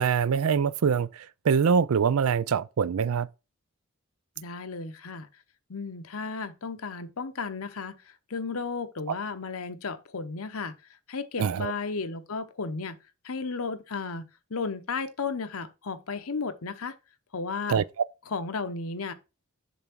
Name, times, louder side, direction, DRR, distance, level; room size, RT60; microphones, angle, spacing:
voice 1, 0.0-3.3 11.4-11.7 17.7-17.8, right 6 dB, 70° right, 0.4 m, -24 dB
voice 2, 4.4-5.3 5.7-8.0 8.3-10.7 11.1-13.0 13.2-16.9 17.3-17.8 18.3-19.1, left 4 dB, 70° left, 0.8 m, -34 dB
7.1 x 3.4 x 6.1 m
head